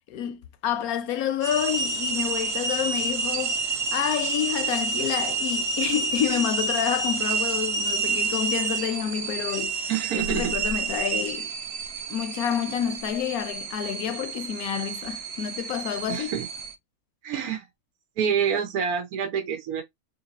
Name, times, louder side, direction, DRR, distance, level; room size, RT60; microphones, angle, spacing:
voice 1, 0.1-11.5 12.1-16.3, left 9 dB, 80° left, 1.1 m, -29 dB
sound 1, 1.4-16.7, right 4 dB, 60° right, 0.7 m, -29 dB
voice 2, 9.9-10.6 16.1-16.5 17.2-17.7 18.2-19.8, right 7 dB, 85° right, 1.3 m, -27 dB
3.2 x 2.7 x 4.0 m
omnidirectional pair, 1.5 m